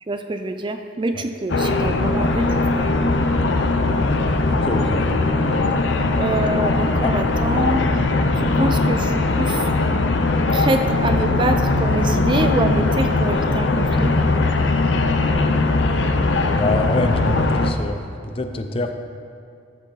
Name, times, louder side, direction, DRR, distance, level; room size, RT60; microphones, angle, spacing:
voice 1, 0.1-2.9 6.2-7.8 8.4-9.7 10.5-14.1, right 2 dB, 25° right, 7 dB, 0.4 m, -25 dB
sound 1, 1.5-17.7, left 2 dB, 80° left, 0.7 m, -20 dB
voice 2, 4.6-5.1 7.0-7.1 16.5-18.9, left 2 dB, 30° left, 6 dB, 0.5 m, -25 dB
14.0 x 6.2 x 4.0 m, 2.4 s
head